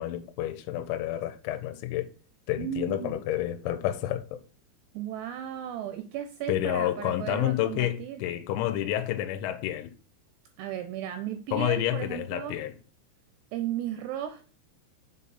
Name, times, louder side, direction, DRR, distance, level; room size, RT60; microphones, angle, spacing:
voice 1, 0.0-2.1 2.5-4.4 6.5-9.9 11.5-12.7, left 13 dB, 85° left, 3.0 m, -29 dB
voice 2, 2.6-3.2 4.9-8.2 10.6-12.6 13.5-14.5, right 10 dB, 85° right, 2.5 m, -35 dB
7.4 x 4.2 x 4.1 m
omnidirectional pair, 5.4 m